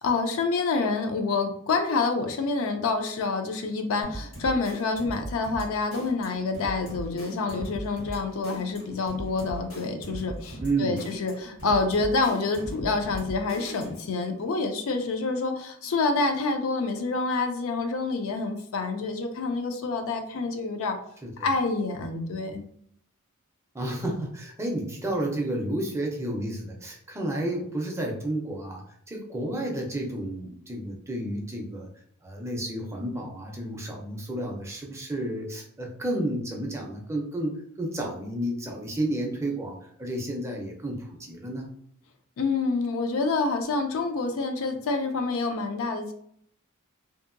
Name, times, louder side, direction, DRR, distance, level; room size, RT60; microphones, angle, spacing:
voice 1, 0.0-21.0 21.4-22.6 42.4-46.1, left 3 dB, 65° left, 6 dB, 0.4 m, -27 dB
sound 1, 4.0-14.1, right 1 dB, 85° left, 1.4 m, -39 dB
voice 2, 10.6-11.0 21.2-21.5 23.7-31.9 32.2-41.7, right 1 dB, 10° right, 0 dB, 0.5 m, -31 dB
2.7 x 2.5 x 2.5 m, 0.66 s
head